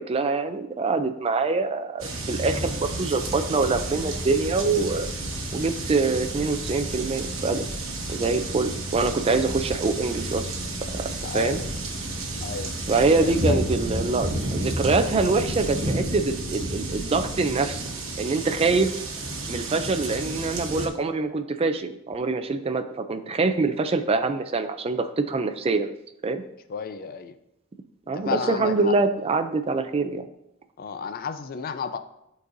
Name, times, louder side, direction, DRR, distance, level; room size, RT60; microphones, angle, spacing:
voice 1, 0.0-5.1 5.5-7.7 8.1-10.5 10.9-11.6 12.9-17.9 18.2-18.9 19.5-25.9 26.2-26.4 28.1-30.3, right 3 dB, 30° right, 9 dB, 0.4 m, -25 dB
sound 1, 2.0-20.9, right 2 dB, 70° right, 1.1 m, -32 dB
sound 2, 3.5-17.6, equal, 75° left, 1.3 m, -36 dB
voice 2, 11.2-11.7 12.4-12.7 13.2-13.6 26.7-27.3 28.2-28.9 30.8-32.0, left 6 dB, 45° left, 10 dB, 0.4 m, -32 dB
11.0 x 4.0 x 2.6 m, 0.82 s
head